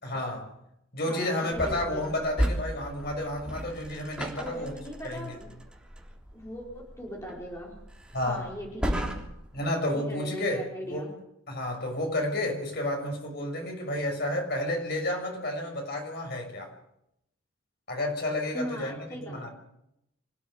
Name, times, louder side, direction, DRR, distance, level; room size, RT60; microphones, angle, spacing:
voice 1, 0.0-0.5 0.9-4.7 5.0-5.4 8.1-8.5 9.5-11.1 11.5-16.7 17.9-19.0 19.2-19.5, left 1 dB, 50° left, 6.1 m, -31 dB
voice 2, 1.1-2.1 4.4-5.5 6.3-7.8 8.2-9.2 9.9-11.1 18.5-19.4, equal, 15° left, 4.7 m, -39 dB
sound 1, 1.5-9.6, equal, 5° right, 3.5 m, -35 dB
26.5 x 15.5 x 8.0 m
head